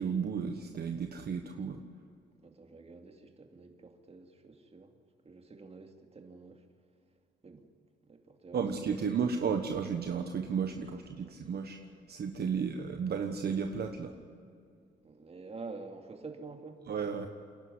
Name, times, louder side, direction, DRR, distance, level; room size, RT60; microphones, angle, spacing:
voice 1, 0.0-1.8 8.5-11.8 12.1-14.1 16.9-17.3, right 6 dB, 55° right, 6 dB, 1.3 m, -33 dB
voice 2, 2.4-4.9 5.2-6.6 7.4-7.6 8.0-9.2 11.1-11.3 12.5-12.8 15.0-16.8, right 4 dB, 30° right, 5 dB, 2.6 m, -48 dB
28.5 x 11.5 x 9.7 m, 2.4 s
cardioid pair, 90°, 20 cm